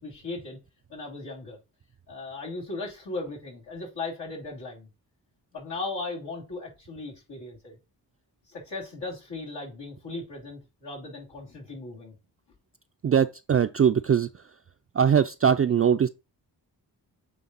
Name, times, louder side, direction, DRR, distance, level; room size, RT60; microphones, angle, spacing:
voice 1, 0.0-0.6 0.9-1.6 2.1-4.9 5.5-7.8 8.5-12.1, left 3 dB, 85° left, 2.9 m, -37 dB
voice 2, 13.0-14.3 15.0-16.1, right 7 dB, 35° right, 0.4 m, -21 dB
8.4 x 3.2 x 4.0 m
cardioid pair, 55°, 41 cm